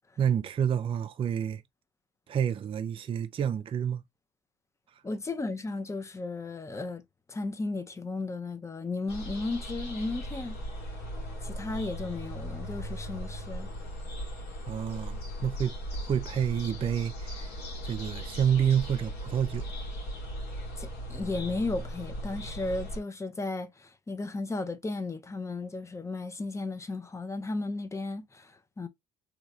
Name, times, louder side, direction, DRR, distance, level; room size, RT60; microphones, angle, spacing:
voice 1, 0.2-1.6 2.3-4.0 4.9-5.0 14.7-17.5 17.8-19.7, right 8 dB, 30° right, 0.4 m, -29 dB
voice 2, 5.0-7.0 7.3-10.6 11.4-13.7 20.8-28.9, left 3 dB, 15° left, 0.6 m, -34 dB
sound 1, 9.1-23.0, equal, 85° left, 1.7 m, -38 dB
3.2 x 2.8 x 2.6 m
cardioid pair, 110°, 17 cm